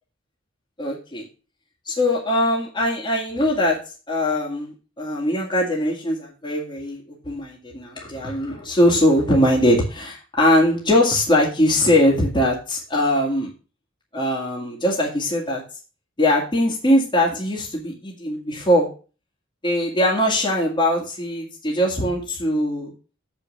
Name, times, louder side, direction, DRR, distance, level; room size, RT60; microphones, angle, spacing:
voice 1, 0.8-1.2 1.9-3.8 4.1-13.5 14.1-15.6 16.2-18.9 19.6-22.9, left 1 dB, 20° left, -3 dB, 2.1 m, -21 dB
7.5 x 5.3 x 7.0 m, 0.35 s
head